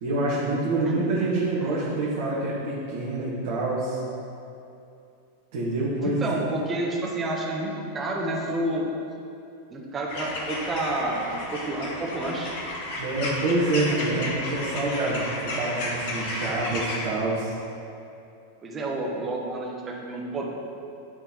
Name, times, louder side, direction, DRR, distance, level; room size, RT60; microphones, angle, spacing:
voice 1, 0.0-4.0 5.5-6.2 13.0-17.5, right 2 dB, 50° right, -8 dB, 1.5 m, -26 dB
voice 2, 1.6-1.9 2.3-2.6 6.0-8.9 9.7-12.5 18.6-20.5, right 2 dB, 20° right, -2 dB, 1.3 m, -30 dB
sound 1, 10.1-17.0, left 2 dB, 50° left, 1.2 m, -33 dB
11.0 x 3.8 x 4.5 m, 2.7 s
figure-of-eight pair, 90°, 0 cm